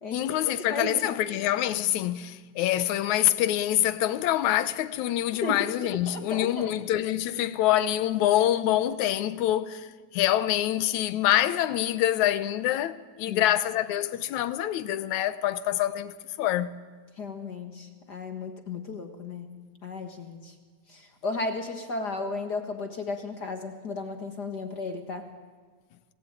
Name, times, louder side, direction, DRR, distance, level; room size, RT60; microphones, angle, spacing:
voice 1, 0.1-9.9 10.1-16.7, left 12 dB, 75° left, 2.1 m, -26 dB
voice 2, 0.7-1.1 5.4-5.7 6.1-6.7 13.3-13.4 17.2-19.5 19.8-20.5 20.9-25.3, left 3 dB, 40° left, 1.6 m, -34 dB
26.5 x 18.5 x 9.1 m
omnidirectional pair, 3.5 m